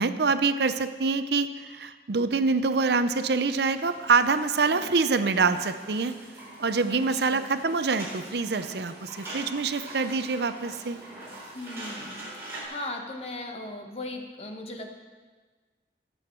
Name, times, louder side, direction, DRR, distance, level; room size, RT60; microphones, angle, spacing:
voice 1, 0.0-6.1 6.6-11.0, right 4 dB, 70° right, 10 dB, 0.6 m, -25 dB
sound 1, 3.5-12.6, right 1 dB, 15° right, 4.5 m, -43 dB
voice 2, 6.9-7.5 11.5-14.9, left 2 dB, 35° left, 3 dB, 1.2 m, -38 dB
19.5 x 7.9 x 4.6 m, 1.4 s
head